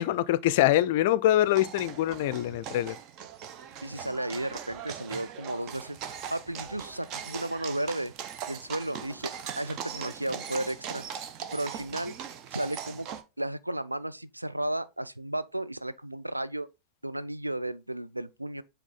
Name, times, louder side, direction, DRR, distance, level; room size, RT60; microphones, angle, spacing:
voice 1, 0.0-3.0, left 13 dB, 50° left, 0.4 m, -24 dB
sound 1, 1.4-13.2, right 8 dB, 40° right, 0.7 m, -40 dB
voice 2, 3.8-8.1 8.5-11.0 11.5-12.2 12.5-13.1 13.4-16.7 17.0-18.6, right 1 dB, 85° right, 0.4 m, -34 dB
7.3 x 3.4 x 3.8 m
figure-of-eight pair, 90°, 0 cm